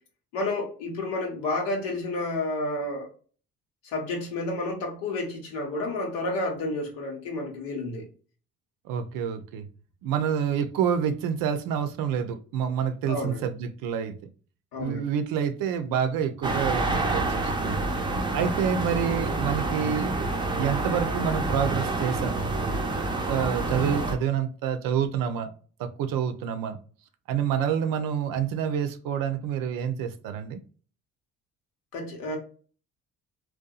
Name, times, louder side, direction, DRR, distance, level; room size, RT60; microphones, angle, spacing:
voice 1, 0.3-3.1 3.8-8.0 13.1-13.5 14.7-15.1 18.3-18.5 31.9-32.4, left 2 dB, 85° left, 1.0 m, -30 dB
voice 2, 8.9-9.7 10.0-14.1 14.8-17.8 18.3-20.1 20.6-22.4 22.9-25.5 25.8-26.8 27.3-30.6, right 8 dB, 75° right, 0.5 m, -28 dB
sound 1, 16.4-24.2, right 2 dB, 15° right, 0.5 m, -28 dB
2.7 x 2.2 x 2.2 m
supercardioid pair, 65°, 34 cm